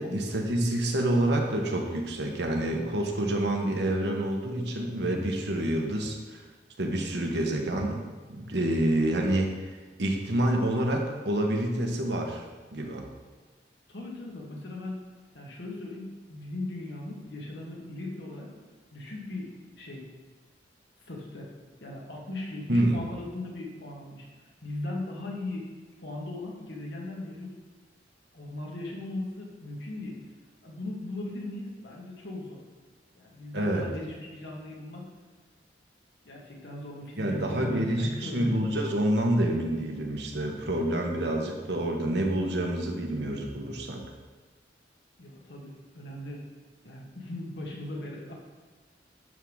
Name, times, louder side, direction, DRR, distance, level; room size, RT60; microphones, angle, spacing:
voice 1, 0.0-6.4 6.8-8.0 8.3-12.4 12.7-13.1 22.7-23.0 33.5-33.8 37.2-44.0, right 1 dB, 70° right, 1 dB, 1.3 m, -28 dB
voice 2, 13.9-15.0 15.3-18.5 18.9-20.1 21.1-21.5 21.8-24.3 24.6-25.7 26.0-27.5 28.3-30.2 30.6-32.6 33.1-35.1 36.2-38.5 45.2-46.4 46.8-48.3, left 2 dB, 70° left, -3 dB, 1.9 m, -38 dB
11.0 x 3.7 x 6.3 m, 1.3 s
head